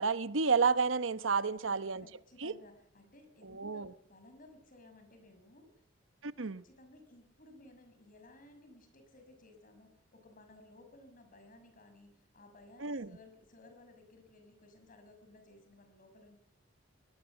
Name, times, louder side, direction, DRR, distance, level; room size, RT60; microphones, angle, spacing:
voice 1, 0.0-2.0 2.4-2.5 3.4-3.9 6.2-6.6 12.8-13.1, right 5 dB, 90° right, 1.0 m, -31 dB
voice 2, 1.5-5.7 6.4-16.4, left 2 dB, 45° left, 6.0 m, -58 dB
22.5 x 18.5 x 7.2 m
head